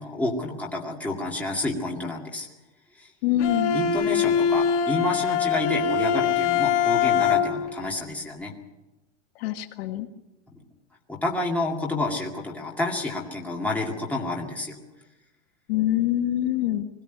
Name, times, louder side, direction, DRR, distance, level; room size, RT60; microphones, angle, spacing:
voice 1, 0.0-2.5 3.0-3.1 3.7-8.5 10.5-10.6 11.1-14.8, left 2 dB, 5° left, -2 dB, 2.2 m, -29 dB
voice 2, 3.2-3.8 9.3-10.1 15.7-16.9, left 12 dB, 55° left, 7 dB, 1.5 m, -25 dB
Bowed string instrument, 3.4-7.8, left 7 dB, 75° left, 2.3 m, -23 dB
21.0 x 16.0 x 9.3 m, 1.0 s
supercardioid pair, 175°, 36 cm